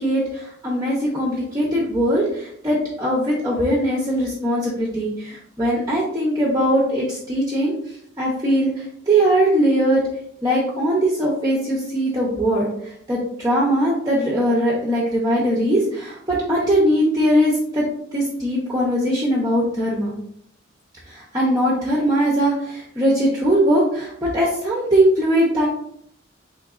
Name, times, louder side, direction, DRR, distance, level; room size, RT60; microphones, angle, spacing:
voice 1, 0.0-10.0 10.4-17.8 18.1-20.2 21.1-25.7, equal, 15° right, -5 dB, 0.5 m, -20 dB
3.8 x 3.1 x 2.4 m, 0.70 s
head